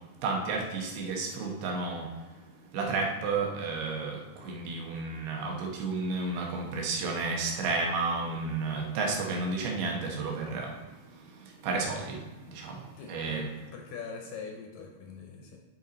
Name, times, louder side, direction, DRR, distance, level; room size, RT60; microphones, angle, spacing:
voice 1, 0.2-2.1 2.7-10.7 11.6-12.2 12.5-12.8 13.1-13.5, right 3 dB, 80° right, 0 dB, 3.1 m, -31 dB
voice 2, 13.0-15.6, left 5 dB, 75° left, 1 dB, 2.2 m, -43 dB
9.2 x 5.7 x 4.0 m, 1.1 s
omnidirectional pair, 4.6 m